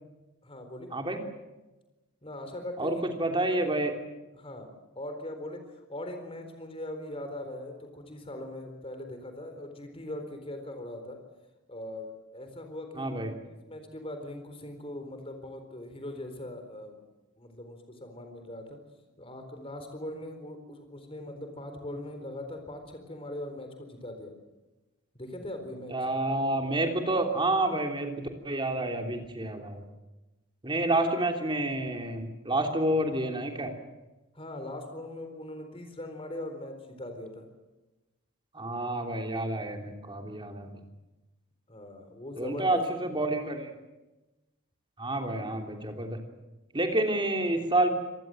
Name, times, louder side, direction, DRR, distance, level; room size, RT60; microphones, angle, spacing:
voice 1, 0.4-0.9 2.2-3.0 3.3-3.4 4.3-4.7 5.0-11.2 11.7-13.1 13.5-17.0 17.4-18.8 19.2-24.4 25.1-25.9 34.3-37.5 41.7-43.1, left 1 dB, 25° left, 6 dB, 4.1 m, -40 dB
voice 2, 2.8-3.9 13.0-13.3 25.9-28.1 28.4-29.8 30.6-33.7 38.5-40.8 42.4-43.7 45.0-46.2 46.7-47.9, right 1 dB, 25° right, 3 dB, 3.2 m, -29 dB
26.5 x 19.0 x 7.8 m, 1.1 s
head